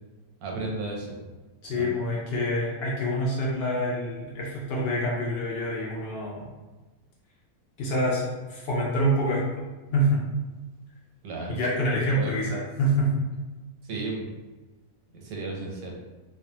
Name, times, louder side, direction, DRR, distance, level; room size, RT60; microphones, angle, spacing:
voice 1, 0.4-1.1 1.7-1.9 11.2-11.6 12.1-12.4 13.9-14.3 15.1-15.9, right 3 dB, 90° right, 0 dB, 1.1 m, -34 dB
voice 2, 1.6-6.5 7.8-9.7 9.9-10.2 11.5-13.2, equal, 75° left, -4 dB, 0.5 m, -26 dB
2.5 x 2.2 x 2.7 m, 1.2 s
omnidirectional pair, 1.5 m